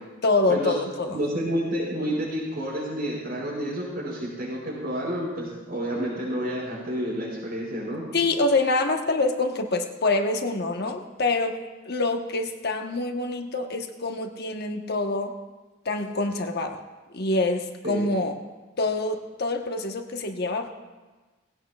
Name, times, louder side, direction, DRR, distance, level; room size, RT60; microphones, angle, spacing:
voice 1, 0.2-1.2 8.1-11.6 11.9-15.3 15.8-16.8 17.1-18.4 18.8-20.7, left 2 dB, 55° left, 4 dB, 1.1 m, -26 dB
voice 2, 1.1-8.1 17.8-18.1, equal, 55° right, -10 dB, 5.6 m, -29 dB
20.0 x 16.5 x 2.4 m, 1.2 s
head